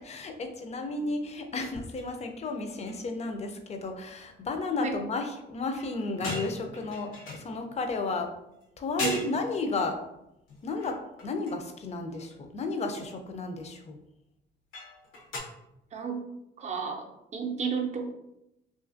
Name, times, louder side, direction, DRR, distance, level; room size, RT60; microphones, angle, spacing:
voice 1, 0.0-8.3 8.8-10.0 10.6-14.0, left 3 dB, 35° left, 5 dB, 0.4 m, -33 dB
sound 1, 2.0-2.1 2.5-2.6 2.9-3.2 5.8-8.0 8.6-8.7 9.0-9.4 10.5-11.7 12.1-12.3 14.7-15.4, left 2 dB, 85° left, 0.7 m, -39 dB
voice 2, 15.9-16.2 16.6-18.1, right 5 dB, 35° right, 3 dB, 0.5 m, -32 dB
2.6 x 2.4 x 2.5 m, 0.87 s
cardioid pair, 90°, 20 cm